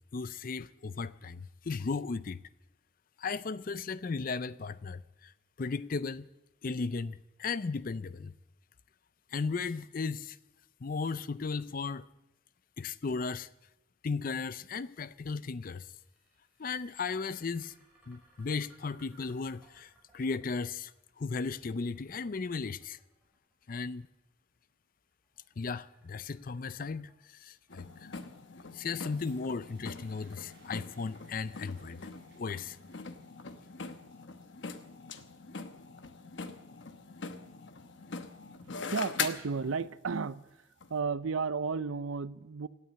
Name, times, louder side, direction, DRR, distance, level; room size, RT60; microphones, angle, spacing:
voice 1, 0.1-2.4 3.2-5.3 5.6-6.3 6.6-8.3 9.3-10.4 10.8-12.1 12.8-13.5 14.0-15.9 16.6-17.7 18.1-20.9 21.2-23.0 23.7-24.1 25.6-28.2 28.7-32.1 32.4-32.8, left 4 dB, 45° left, 0.4 m, -36 dB
sound 1, 15.6-31.6, right 2 dB, 5° right, 6.3 m, -67 dB
sound 2, 27.7-39.9 40.8-40.9, left 5 dB, 60° left, 1.0 m, -42 dB
sound 3, 29.1-37.1 37.9-38.0, right 3 dB, 55° right, 4.4 m, -66 dB
voice 2, 38.9-40.4 40.9-42.7, right 5 dB, 85° right, 0.6 m, -33 dB
17.0 x 9.6 x 7.5 m
head